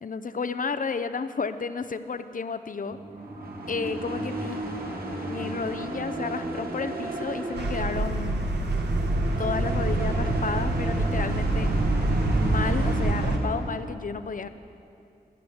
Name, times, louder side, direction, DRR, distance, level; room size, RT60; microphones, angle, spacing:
voice 1, 0.0-3.0 3.7-4.6 5.3-8.4 9.4-11.7 12.3-14.5, left 5 dB, 55° left, 12 dB, 0.7 m, -32 dB
sound 1, 2.9-13.9, right 2 dB, 65° right, 1.9 m, -34 dB
sound 2, 7.6-13.4, right 2 dB, 85° right, 1.4 m, -26 dB
14.5 x 10.0 x 7.1 m, 2.6 s
cardioid pair, 45°, 17 cm